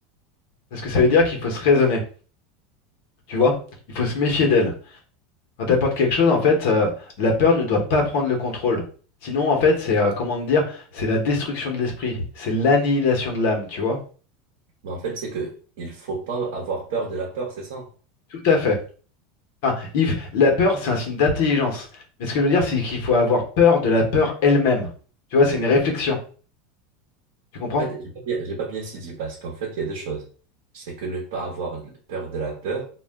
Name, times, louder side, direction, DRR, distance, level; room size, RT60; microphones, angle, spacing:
voice 1, 0.7-2.0 3.3-3.5 3.9-4.7 5.6-6.9 7.2-8.8 9.2-14.0 18.3-18.8 19.6-21.9 22.2-24.9 25.3-26.2 27.5-27.9, left 4 dB, 60° left, 1 dB, 0.9 m, -20 dB
voice 2, 14.8-17.9 27.8-30.3 30.7-32.9, right 4 dB, 70° right, -2 dB, 0.8 m, -30 dB
2.4 x 2.1 x 3.4 m, 0.40 s
supercardioid pair, 165°, 0 cm